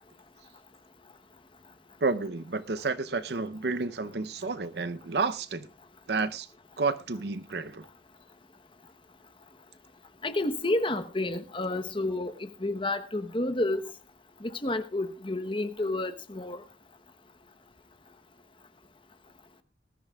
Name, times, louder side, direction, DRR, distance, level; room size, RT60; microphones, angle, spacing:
voice 1, 2.0-5.7 6.1-6.5 6.8-7.9, right 4 dB, 65° right, 0.7 m, -30 dB
voice 2, 10.2-13.8 14.4-16.6, left 2 dB, 30° left, 1.0 m, -30 dB
20.5 x 14.0 x 2.4 m
head